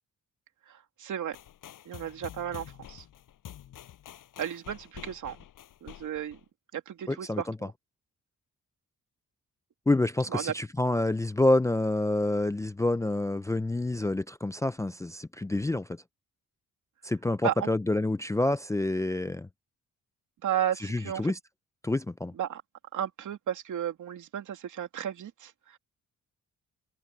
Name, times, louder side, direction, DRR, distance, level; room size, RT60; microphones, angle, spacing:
voice 1, 0.7-1.4 1.9-3.0 4.4-5.4 5.8-6.4 6.7-7.7 10.3-10.5 17.4-17.7 20.4-21.3 22.4-22.6 22.9-25.8, right 10 dB, 75° right, 2.6 m, -34 dB
sound 1, 1.3-6.5, left 11 dB, 90° left, 7.9 m, -48 dB
voice 2, 7.1-7.6 9.9-15.9 17.0-19.5 20.8-21.4 21.8-22.3, left 2 dB, 10° left, 0.4 m, -27 dB
wide cardioid pair, 145°, 31 cm